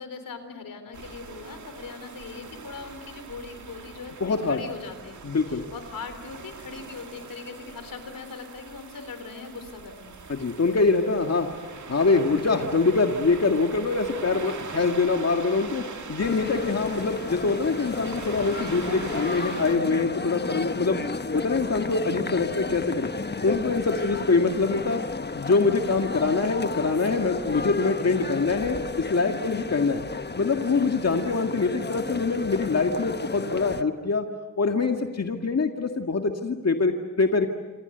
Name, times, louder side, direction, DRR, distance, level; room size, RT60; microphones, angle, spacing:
voice 1, 0.0-5.2 5.5-10.2 23.9-24.3, left 5 dB, 85° left, 8 dB, 3.8 m, -40 dB
sound 1, 0.9-19.8, right 5 dB, 60° right, 2.3 m, -41 dB
voice 2, 4.2-4.6 5.2-5.6 10.3-11.5 11.9-15.8 16.1-21.0 21.3-23.1 23.4-25.0 25.4-30.0 30.4-34.3 34.6-37.5, left 4 dB, 50° left, 4 dB, 2.0 m, -24 dB
sound 2, 16.2-33.8, left 4 dB, 30° left, 1.2 m, -33 dB
28.0 x 26.0 x 8.1 m, 1.3 s
cardioid pair, 55°, 33 cm